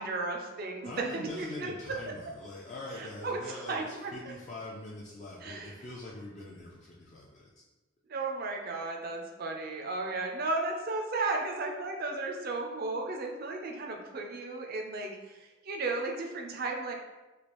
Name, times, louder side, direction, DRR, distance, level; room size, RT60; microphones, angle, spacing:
voice 1, 0.0-1.7 3.0-4.1 5.4-5.8 8.1-16.9, right 3 dB, 50° right, 1 dB, 0.5 m, -34 dB
voice 2, 0.8-7.5, left 2 dB, 35° left, -4 dB, 0.3 m, -43 dB
3.3 x 2.4 x 3.0 m, 1.1 s
head